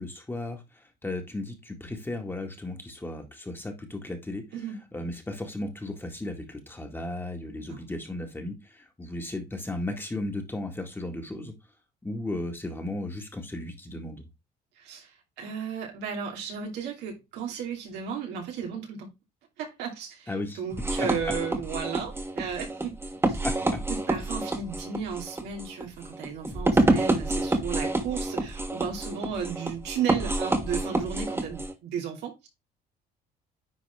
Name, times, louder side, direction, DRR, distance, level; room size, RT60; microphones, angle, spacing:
voice 1, 0.0-4.4 4.9-11.5 12.0-14.3 20.3-20.6 21.0-21.1 23.4-23.8, left 2 dB, 15° left, 2.0 m, -35 dB
voice 2, 14.8-19.1 19.6-23.0 23.3-23.4 23.9-32.5, right 7 dB, 85° right, 2.6 m, -34 dB
sound 1, 20.7-31.7, right 2 dB, 15° right, 1.7 m, -28 dB
10.0 x 4.2 x 3.6 m
cardioid pair, 110°, 17 cm